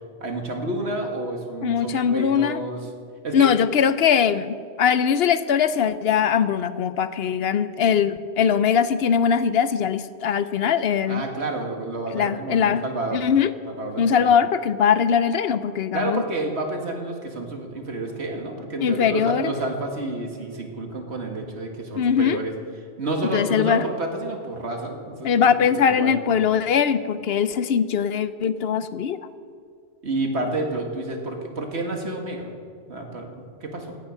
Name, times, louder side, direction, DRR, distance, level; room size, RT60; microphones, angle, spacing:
voice 1, 0.2-2.9 3.2-3.5 11.1-13.3 13.6-14.3 15.9-22.5 23.0-25.3 25.8-26.1 30.0-32.5 32.9-33.9, right 2 dB, 75° right, 2 dB, 2.2 m, -29 dB
voice 2, 1.6-2.6 3.3-11.2 12.1-12.8 13.1-13.5 14.0-16.2 18.8-19.5 22.0-22.4 23.3-23.8 25.2-29.2, left 7 dB, 65° left, 13 dB, 0.8 m, -21 dB
16.5 x 10.0 x 6.4 m, 2.3 s
omnidirectional pair, 1.1 m